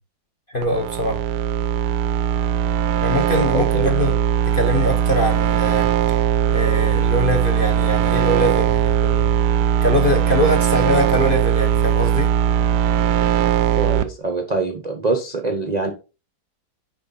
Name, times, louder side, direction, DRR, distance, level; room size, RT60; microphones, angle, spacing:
voice 1, 0.5-1.2 3.0-4.1 4.5-5.9 6.5-9.3 9.8-12.3, left 1 dB, 40° left, 0.8 m, -22 dB
sound 1, 0.6-14.0, right 10 dB, 70° right, 1.0 m, -19 dB
voice 2, 3.5-3.9 13.7-15.9, right 3 dB, 50° right, 0.5 m, -24 dB
6.3 x 5.4 x 4.0 m
omnidirectional pair, 2.2 m